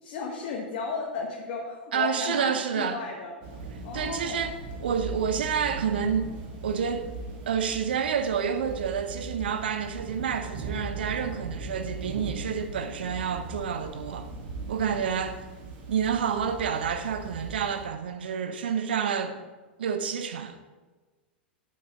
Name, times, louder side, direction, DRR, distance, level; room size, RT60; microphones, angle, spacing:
voice 1, 0.0-3.3 3.8-4.5, left 5 dB, 50° left, 1.3 m, -34 dB
voice 2, 1.9-3.0 3.9-6.3 6.6-7.1 7.5-14.3 14.7-15.4 15.9-19.4 19.8-20.6, right 7 dB, 65° right, 0.8 m, -29 dB
Thunder / Rain, 3.4-17.9, right 3 dB, 45° right, 2.2 m, -39 dB
8.8 x 8.7 x 3.8 m
figure-of-eight pair, 95°, 6 cm